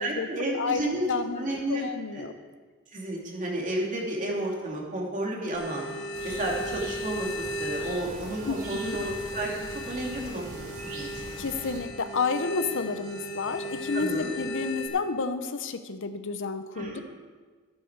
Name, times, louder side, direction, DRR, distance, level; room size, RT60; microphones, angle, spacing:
voice 1, 0.0-1.0 1.3-1.9 2.1-2.3 2.9-5.9 6.2-10.4 10.8-11.1 13.9-14.3 16.7-17.0, right 1 dB, 40° right, -2 dB, 2.7 m, -32 dB
voice 2, 0.5-2.3 8.4-9.0 11.4-17.0, left 4 dB, 65° left, 10 dB, 0.8 m, -31 dB
sound 1, 5.5-14.9, equal, 20° left, 2.7 m, -36 dB
sound 2, 6.1-11.8, right 2 dB, 85° right, 2.6 m, -42 dB
15.0 x 10.5 x 4.7 m, 1.5 s
head